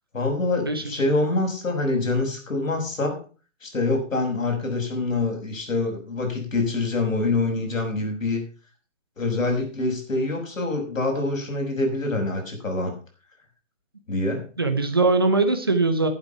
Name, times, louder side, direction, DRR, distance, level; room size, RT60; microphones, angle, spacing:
voice 1, 0.1-3.2 3.6-8.4 9.2-12.9 14.1-14.4, left 2 dB, 85° left, 4 dB, 6.3 m, -25 dB
voice 2, 0.6-1.0 14.6-16.1, right 3 dB, 20° right, 6 dB, 0.9 m, -21 dB
11.5 x 8.7 x 5.8 m, 0.37 s
hypercardioid pair, 180°, 39 cm